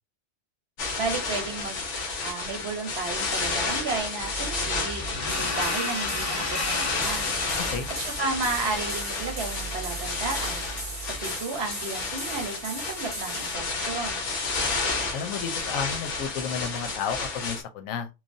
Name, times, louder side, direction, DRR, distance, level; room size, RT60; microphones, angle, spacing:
sound 1, 0.8-17.6, left 3 dB, 65° left, 1.1 m, -31 dB
voice 1, 1.0-7.3 7.9-10.6 11.0-14.2, right 3 dB, 55° right, 0.9 m, -33 dB
sound 2, 4.2-11.2, left 2 dB, 35° left, 1.0 m, -34 dB
sound 3, 5.3-13.5, right 2 dB, 20° right, 0.5 m, -39 dB
voice 2, 15.1-18.1, left 7 dB, 85° left, 1.0 m, -32 dB
3.1 x 2.2 x 2.5 m
omnidirectional pair, 1.4 m